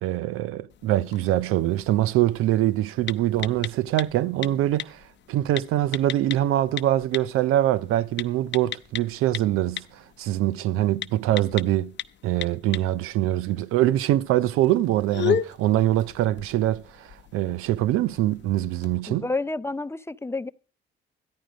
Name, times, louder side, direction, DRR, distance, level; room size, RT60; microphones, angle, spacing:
voice 1, 0.0-5.0 5.3-11.9 12.2-19.2, right 14 dB, 90° right, 0.5 m, -24 dB
sound 1, 0.7-19.0, left 10 dB, 60° left, 0.7 m, -37 dB
voice 2, 19.1-20.5, left 3 dB, 10° left, 0.5 m, -29 dB
13.5 x 10.0 x 5.0 m
cardioid pair, 80°, 21 cm